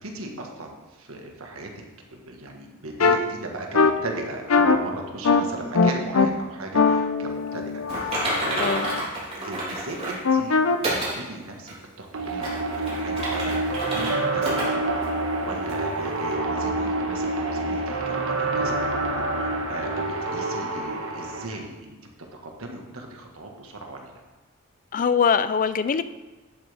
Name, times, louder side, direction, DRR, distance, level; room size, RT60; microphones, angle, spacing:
voice 1, 0.0-1.7 2.1-8.9 9.3-18.8 19.1-22.0 22.4-24.2, right 2 dB, 90° right, 2 dB, 1.5 m, -37 dB
sound 1, 3.0-3.2 3.7-3.9 4.5-4.8 5.2-5.4 5.7-6.3 6.7-9.0 10.2-10.8, left 4 dB, 85° left, 0.6 m, -21 dB
Typing, 7.9-10.2 10.8-11.2 11.7-11.8 12.3-14.1 14.4-14.7 15.0-15.1 15.7-15.8, right 1 dB, 30° right, 3.4 m, -29 dB
voice 2, 8.5-8.9 24.9-26.0, left 6 dB, 40° left, 13 dB, 0.4 m, -22 dB
sound 2, 12.1-21.5, right 2 dB, 70° right, 1.3 m, -27 dB
11.0 x 8.1 x 3.5 m, 1.2 s
head